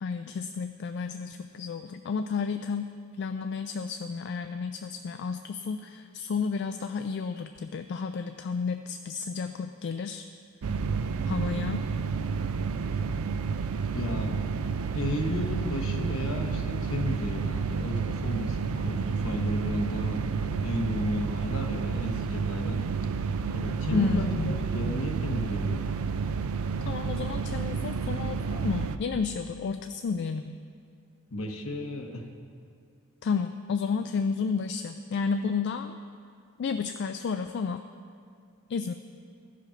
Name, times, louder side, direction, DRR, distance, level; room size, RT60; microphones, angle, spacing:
voice 1, 0.0-2.9 3.2-10.3 11.3-11.8 23.9-24.6 26.8-30.6 33.2-36.0 36.6-37.8 38.7-38.9, left 5 dB, 50° left, 8 dB, 0.3 m, -31 dB
sound 1, 10.6-29.0, right 5 dB, 75° right, 0.4 m, -30 dB
voice 2, 13.9-14.3 14.9-22.8 23.5-25.9 31.3-32.2, left 1 dB, 65° left, 3 dB, 1.1 m, -33 dB
14.5 x 5.0 x 5.7 m, 2.4 s
head